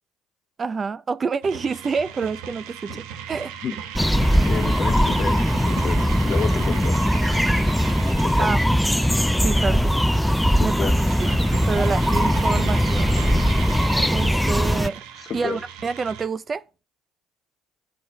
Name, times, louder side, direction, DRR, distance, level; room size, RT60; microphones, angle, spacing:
voice 1, 0.6-3.5 8.4-8.8 9.4-9.9 10.6-10.9 11.2-11.4 11.7-13.2 14.1-16.6, right 5 dB, 35° right, 0.7 m, -27 dB
sound 1, 1.4-16.3, right 8 dB, 85° right, 1.2 m, -36 dB
sound 2, 4.0-14.9, equal, 5° left, 0.4 m, -20 dB
voice 2, 4.4-7.0 8.2-8.6 10.5-11.0 15.2-15.6, left 7 dB, 50° left, 0.9 m, -31 dB
8.4 x 4.7 x 7.2 m
supercardioid pair, 65°, 0 cm